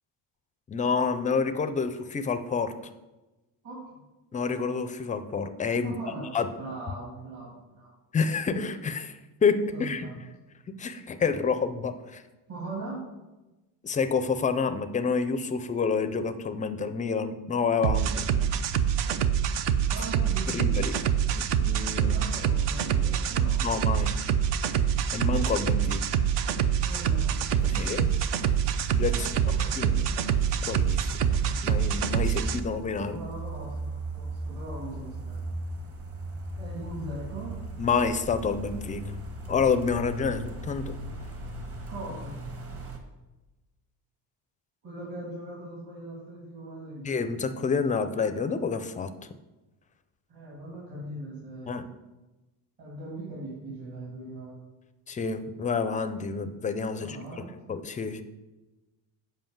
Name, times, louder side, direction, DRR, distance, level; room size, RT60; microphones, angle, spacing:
voice 1, 0.7-2.7 4.3-6.0 6.3-6.5 8.1-9.2 9.4-10.0 10.8-12.2 13.8-18.3 20.5-20.9 21.3-22.2 23.6-24.1 25.1-26.0 27.7-28.1 29.0-29.3 29.8-30.0 30.7-31.1 31.6-33.2 37.8-39.0 39.5-41.0 47.0-49.1 51.7-51.8 55.1-57.2 57.7-58.2, left 5 dB, 20° left, 10 dB, 0.4 m, -28 dB
voice 2, 3.6-4.0 5.8-6.3 6.6-7.9 9.7-10.2 12.5-13.0 19.9-20.8 21.9-23.6 26.8-27.9 29.1-29.7 33.0-35.4 36.6-37.5 41.9-42.4 44.8-47.2 50.3-51.8 52.8-54.5 57.0-57.5, right 2 dB, 50° right, -5 dB, 3.0 m, -40 dB
sound 1, 17.8-32.6, right 8 dB, 65° right, 0.7 m, -26 dB
sound 2, 26.9-43.0, right 1 dB, 30° right, 1.2 m, -38 dB
7.8 x 5.2 x 7.3 m, 1.1 s
cardioid pair, 155°, 45 cm